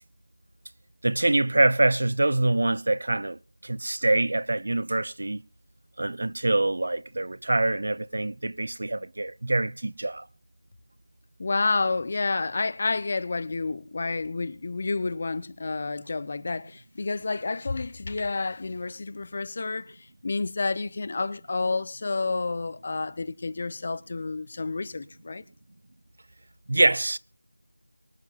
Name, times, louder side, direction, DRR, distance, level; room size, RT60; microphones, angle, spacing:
voice 1, 1.0-5.4 6.0-10.3 26.7-27.2, right 2 dB, 50° right, 0.5 m, -25 dB
voice 2, 11.4-25.4, left 3 dB, 30° left, 0.6 m, -30 dB
24.0 x 11.5 x 2.4 m
figure-of-eight pair, 170°, 0 cm